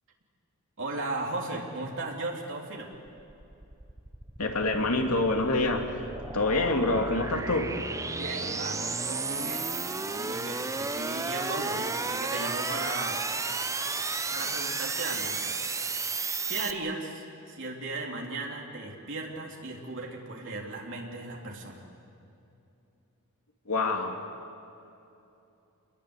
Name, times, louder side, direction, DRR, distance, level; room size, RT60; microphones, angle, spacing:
voice 1, 0.8-2.9 8.1-9.7 10.1-13.2 14.3-15.6 16.5-21.8, right 2 dB, 60° right, -1 dB, 3.7 m, -36 dB
sound 1, 2.9-16.7, right 4 dB, 15° right, 0.7 m, -33 dB
voice 2, 4.4-6.1 6.3-7.8 23.7-24.2, left 2 dB, 75° left, 3 dB, 2.6 m, -26 dB
28.0 x 21.0 x 8.4 m, 2.9 s
head